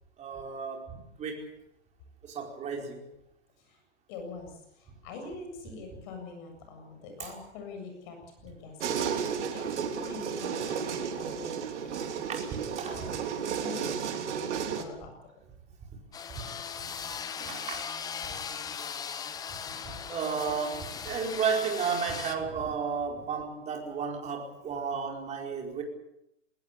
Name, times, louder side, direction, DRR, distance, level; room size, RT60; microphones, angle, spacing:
voice 1, 0.2-1.5 2.2-3.0 7.2-7.3 9.1-9.3 12.3-12.9 16.3-16.6 17.1-17.9 18.2-18.3 19.5-25.8, right 6 dB, 20° right, 1 dB, 4.8 m, -33 dB
voice 2, 4.1-11.6 11.8-12.5 12.9-15.1, left 3 dB, 40° left, 5 dB, 7.6 m, -44 dB
sound 1, 8.8-14.8, right 7 dB, 70° right, 3.7 m, -33 dB
sound 2, 16.1-22.3, left 7 dB, 10° left, 0.9 m, -38 dB
20.5 x 20.0 x 8.3 m, 0.82 s
hypercardioid pair, 150°, 36 cm